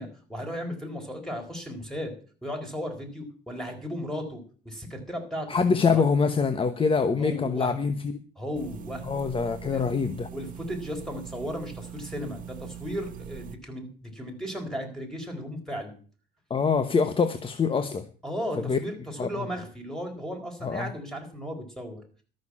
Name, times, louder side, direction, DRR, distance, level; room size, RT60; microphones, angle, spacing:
voice 1, 0.0-2.1 2.4-5.6 5.9-6.1 7.2-7.7 8.4-9.0 9.7-9.8 10.3-16.0 18.2-22.0, equal, 5° left, 3 dB, 4.2 m, -35 dB
voice 2, 5.5-8.1 9.0-10.3 16.5-18.1 18.6-18.8 19.2-19.3 20.6-20.9, left 5 dB, 30° left, 10 dB, 1.0 m, -24 dB
sound 1, 8.5-13.5, right 9 dB, 55° right, 1.0 m, -42 dB
13.0 x 6.5 x 8.6 m, 0.41 s
cardioid pair, 110°, 17 cm